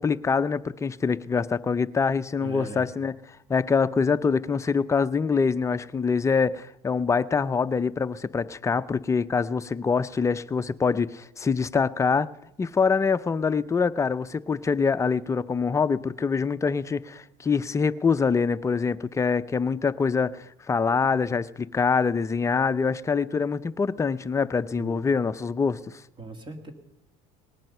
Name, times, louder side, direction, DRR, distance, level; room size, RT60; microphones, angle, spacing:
voice 1, 0.0-3.2 3.5-12.3 12.6-26.0, left 5 dB, 20° left, 0.5 m, -25 dB
voice 2, 2.4-2.9 24.8-25.0 26.2-26.7, right 2 dB, 30° right, 1.8 m, -39 dB
19.0 x 9.1 x 6.5 m
cardioid pair, 120°, 16 cm